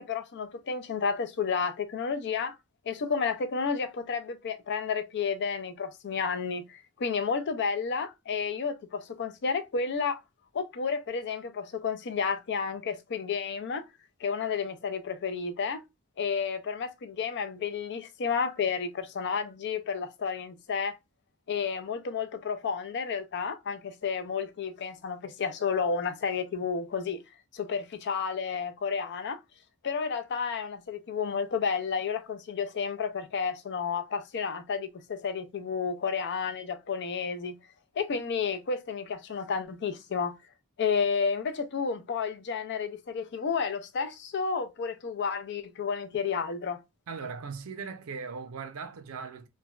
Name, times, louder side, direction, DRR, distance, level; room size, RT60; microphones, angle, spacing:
voice 1, 0.0-2.6 2.9-10.2 10.5-13.9 14.2-15.8 16.2-21.0 21.5-27.2 27.5-29.4 29.8-37.6 38.0-40.4 40.8-46.8, left 5 dB, 55° left, 0.4 m, -31 dB
voice 2, 47.1-49.5, right 5 dB, 70° right, 0.5 m, -39 dB
3.1 x 2.2 x 2.3 m
head